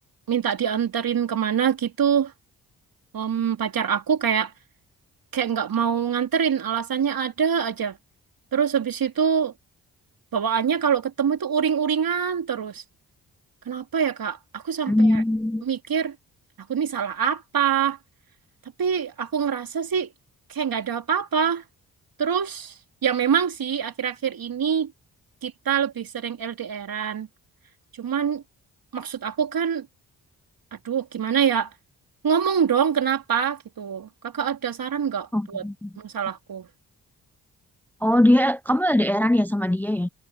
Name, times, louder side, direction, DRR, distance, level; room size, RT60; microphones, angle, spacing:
voice 1, 0.3-2.3 3.1-4.5 5.3-8.0 8.5-9.5 10.3-12.8 13.7-15.2 15.6-16.1 16.7-18.0 18.8-20.1 20.5-21.6 22.2-22.7 23.0-24.9 25.4-27.3 28.0-28.4 28.9-29.9 30.8-31.7 32.2-35.6 36.0-36.7, right 7 dB, 65° right, 3.2 m, -25 dB
voice 2, 14.9-15.6 35.3-35.9 38.0-40.1, left 1 dB, 5° left, 0.5 m, -21 dB
supercardioid pair, 50°, 38 cm